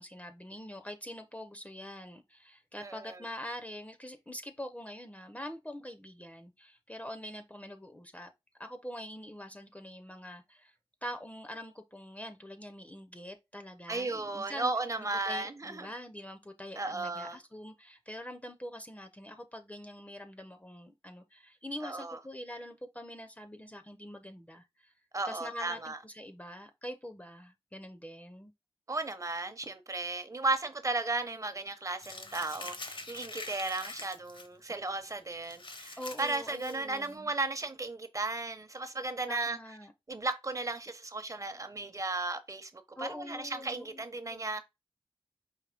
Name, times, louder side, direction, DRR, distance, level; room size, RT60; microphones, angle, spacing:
voice 1, 0.0-8.3 8.6-10.7 11.0-14.7 15.0-24.9 25.3-28.5 36.0-37.3 39.3-39.9 43.0-44.5, equal, 15° left, 0.6 m, -44 dB
voice 2, 2.8-3.2 13.9-15.9 16.8-17.4 21.8-22.2 25.1-26.0 28.9-39.6 40.1-44.6, right 3 dB, 35° right, 0.8 m, -35 dB
Crumpling crinkling, 32.0-34.5 34.9-35.0 35.4-37.1, left 3 dB, 60° left, 0.9 m, -45 dB
5.0 x 3.0 x 3.4 m
wide cardioid pair, 85°, 10 cm